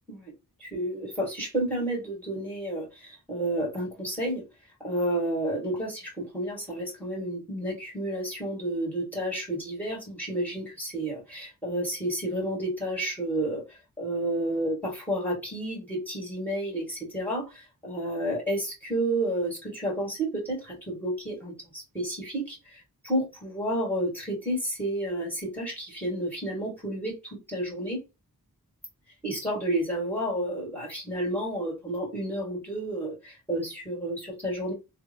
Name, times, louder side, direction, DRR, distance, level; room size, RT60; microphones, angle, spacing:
voice 1, 0.6-4.4 4.8-28.0 29.2-34.7, right 1 dB, 5° left, -4 dB, 2.1 m, -31 dB
3.5 x 2.1 x 2.9 m, 0.25 s
wide cardioid pair, 50°, 37 cm